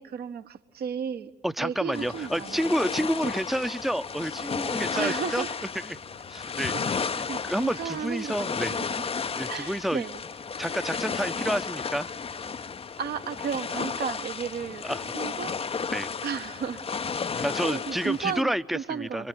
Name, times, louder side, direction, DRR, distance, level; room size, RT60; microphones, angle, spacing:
voice 1, 0.0-1.3 1.6-2.6 3.2-3.3 4.9-5.5 6.7-7.0 7.3-9.1 9.5-10.2 13.0-14.8 15.1-15.9 16.2-16.8 17.6-19.3, right 7 dB, 50° right, 1.3 m, -34 dB
voice 2, 1.4-5.4 5.8-6.0 6.3-6.7 7.2-8.8 9.4-10.0 10.6-12.1 14.8-15.1 15.9-16.1 17.4-19.3, equal, ahead, 0.9 m, -29 dB
sound 1, 1.9-18.4, left 5 dB, 30° left, 0.7 m, -33 dB
25.0 x 24.5 x 9.4 m
figure-of-eight pair, 45°, 21 cm